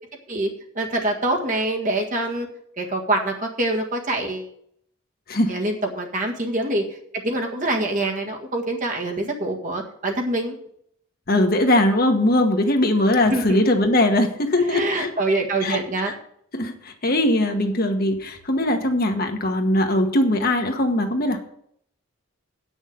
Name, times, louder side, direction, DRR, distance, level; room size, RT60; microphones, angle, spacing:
voice 1, 0.7-2.5 2.8-4.5 5.5-6.8 7.1-10.6 13.2-13.6 14.6-16.2, right 2 dB, 35° right, 1 dB, 1.7 m, -25 dB
voice 2, 11.3-15.1 15.6-15.8 16.5-21.4, left 1 dB, 45° left, 4 dB, 1.3 m, -20 dB
8.9 x 6.4 x 7.8 m, 0.67 s
head